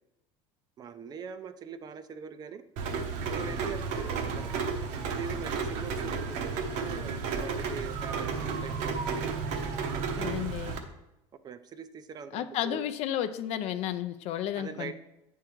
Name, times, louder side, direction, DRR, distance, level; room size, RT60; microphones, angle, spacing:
voice 1, 0.8-2.6 3.3-4.6 5.1-9.3 11.4-12.9 14.6-14.9, right 6 dB, 30° right, 11 dB, 0.4 m, -42 dB
Rain, 2.8-10.8, right 5 dB, 65° right, 0.9 m, -32 dB
voice 2, 10.2-10.8 12.3-14.9, left 11 dB, 55° left, 11 dB, 0.5 m, -32 dB
8.7 x 3.7 x 4.5 m, 0.91 s
cardioid pair, 130°, 13 cm